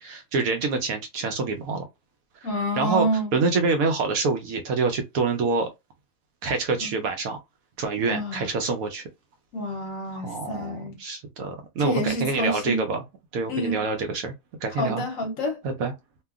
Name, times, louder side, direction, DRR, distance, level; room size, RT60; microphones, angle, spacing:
voice 1, 0.0-1.8 2.3-2.5 2.8-3.1 3.3-5.7 6.4-7.4 7.8-9.1 10.1-13.0 13.3-14.3 14.6-15.0 15.6-15.9, right 4 dB, 70° right, 1.0 m, -26 dB
voice 2, 2.4-3.4 6.8-6.9 8.0-8.5 9.5-11.0 11.8-12.8 13.5-13.8 14.8-15.6, equal, 65° left, 1.0 m, -28 dB
2.8 x 2.4 x 2.3 m
omnidirectional pair, 1.7 m